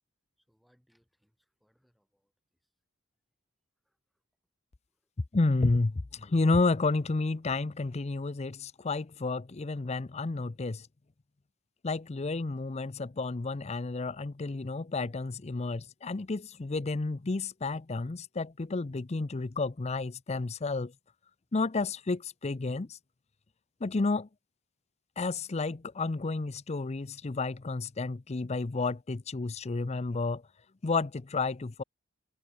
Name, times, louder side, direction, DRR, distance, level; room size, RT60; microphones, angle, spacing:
voice 1, 0.4-2.7 3.8-4.2 4.9-5.3, equal, ahead, 6.0 m, -74 dB
voice 2, 5.3-10.9 11.8-20.9 21.5-23.0 23.8-24.3 25.2-30.4 30.8-31.8, left 3 dB, 30° left, 0.5 m, -31 dB
head